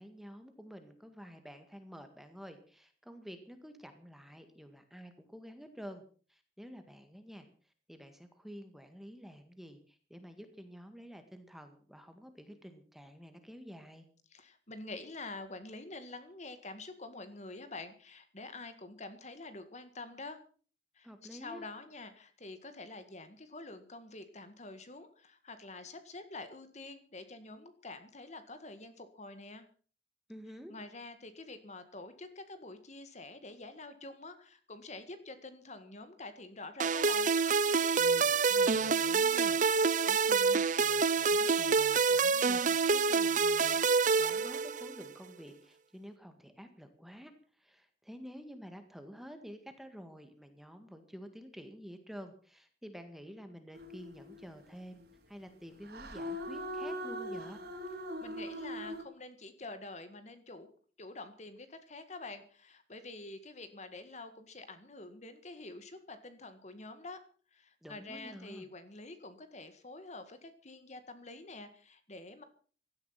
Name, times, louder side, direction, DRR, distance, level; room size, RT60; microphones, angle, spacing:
voice 1, 0.0-6.0 6.3-14.1 21.0-21.7 30.3-30.7 38.0-57.6 67.8-68.7, equal, ahead, 7 dB, 1.8 m, -50 dB
voice 2, 14.3-20.4 21.0-29.7 30.7-37.3 58.2-60.7 61.0-67.2 67.5-72.4, left 2 dB, 40° left, 10 dB, 1.8 m, -47 dB
sound 1, 36.8-45.1, right 5 dB, 45° right, 0.7 m, -27 dB
sound 2, 53.7-54.4 55.9-59.0, equal, 60° right, 3.8 m, -40 dB
17.0 x 13.0 x 5.8 m, 0.42 s
head